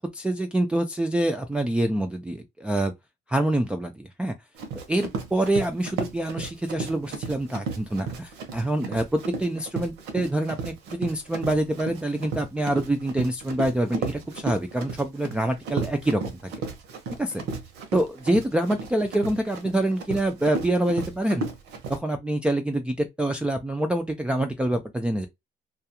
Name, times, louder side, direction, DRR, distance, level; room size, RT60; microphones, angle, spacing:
voice 1, 0.1-2.9 3.3-4.3 4.9-16.2 17.2-17.4 17.9-21.5 21.9-25.3, right 1 dB, 5° right, 0.3 m, -26 dB
Run, 4.6-22.0, right 4 dB, 85° right, 0.8 m, -34 dB
2.3 x 2.3 x 2.8 m
cardioid pair, 110°, 17 cm